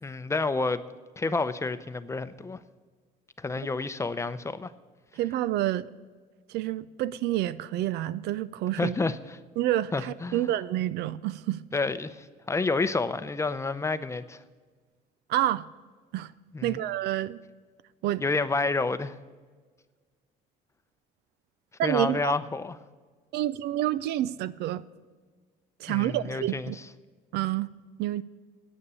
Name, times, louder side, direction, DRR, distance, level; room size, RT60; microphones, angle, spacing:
voice 1, 0.0-0.8 1.2-2.6 3.4-4.7 8.8-9.4 9.9-10.4 11.7-14.4 16.5-16.8 18.2-19.1 21.8-22.8 25.9-26.8, left 3 dB, 15° left, 0.6 m, -29 dB
voice 2, 5.2-5.9 6.5-9.0 9.6-11.6 15.3-15.6 16.1-16.3 16.6-17.4 18.0-18.2 21.8-22.3 23.3-24.8 25.8-26.8 27.3-27.7 28.0-28.2, right 14 dB, 80° right, 0.5 m, -28 dB
9.8 x 8.8 x 6.8 m
cardioid pair, 110°, 17 cm